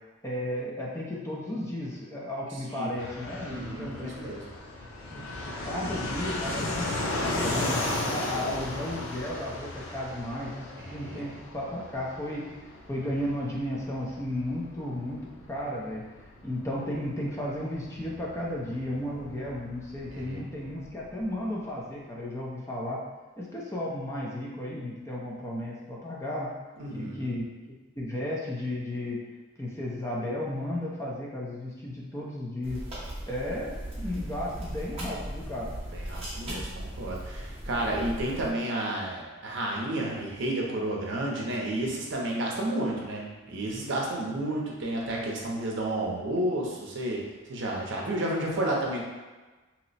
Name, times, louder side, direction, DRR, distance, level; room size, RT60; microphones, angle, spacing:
voice 1, 0.2-4.3 5.1-12.5 12.9-16.1 16.4-23.0 23.4-26.5 26.9-29.2 29.6-32.8 33.3-35.7, left 1 dB, 15° left, -4 dB, 0.4 m, -34 dB
Fixed-wing aircraft airplane, 3.0-21.3, left 2 dB, 75° left, 0.5 m, -36 dB
voice 2, 3.4-4.4 10.8-11.2 20.1-20.4 26.8-27.3 35.9-47.2 47.5-49.0, right 1 dB, 60° right, -2 dB, 0.6 m, -31 dB
sound 1, 32.6-38.5, right 1 dB, 30° right, 0.8 m, -38 dB
2.8 x 2.0 x 4.0 m, 1.2 s
head